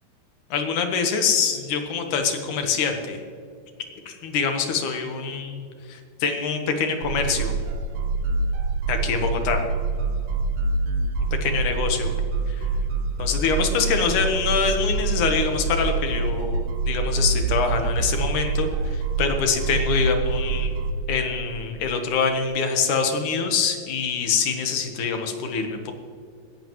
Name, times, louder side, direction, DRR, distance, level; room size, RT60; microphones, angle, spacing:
voice 1, 0.5-3.2 4.1-7.5 8.9-9.6 11.4-12.1 12.5-12.7 13.2-20.7 21.1-25.9, left 5 dB, 70° left, 5 dB, 2.7 m, -25 dB
sound 1, 7.0-20.9, right 3 dB, 70° right, 1.8 m, -25 dB
18.0 x 14.5 x 3.1 m, 2.3 s
omnidirectional pair, 3.9 m